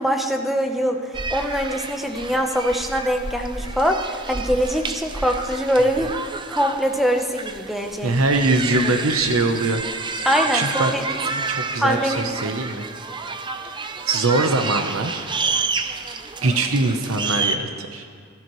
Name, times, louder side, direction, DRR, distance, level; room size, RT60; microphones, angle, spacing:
voice 1, 0.0-6.2 6.5-8.2 8.8-9.0 10.2-11.2 11.8-12.5, equal, ahead, 4 dB, 0.9 m, -23 dB
sound 1, 1.1-17.6, right 4 dB, 20° right, 0.5 m, -29 dB
voice 2, 8.0-9.8 10.2-10.9 11.3-12.9 13.6-15.3 16.0-18.0, right 2 dB, 75° right, 6 dB, 0.9 m, -23 dB
16.5 x 13.5 x 3.1 m, 2.2 s
head